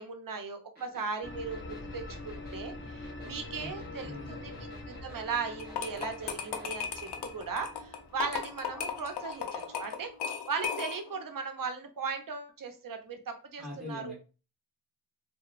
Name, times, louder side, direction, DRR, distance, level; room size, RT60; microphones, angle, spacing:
voice 1, 0.0-4.5 4.9-10.1 10.5-14.1, right 5 dB, 60° right, 6 dB, 0.6 m, -37 dB
sound 1, 0.8-6.7, right 2 dB, 25° right, 1.3 m, -54 dB
sound 2, 1.2-10.1, left 2 dB, 30° left, 0.5 m, -45 dB
voice 2, 4.0-4.7 13.6-14.1, left 1 dB, ahead, -6 dB, 1.1 m, -43 dB
sound 3, 5.6-11.2, left 7 dB, 85° left, 0.5 m, -36 dB
2.8 x 2.1 x 2.4 m, 0.34 s
cardioid pair, 40°, 39 cm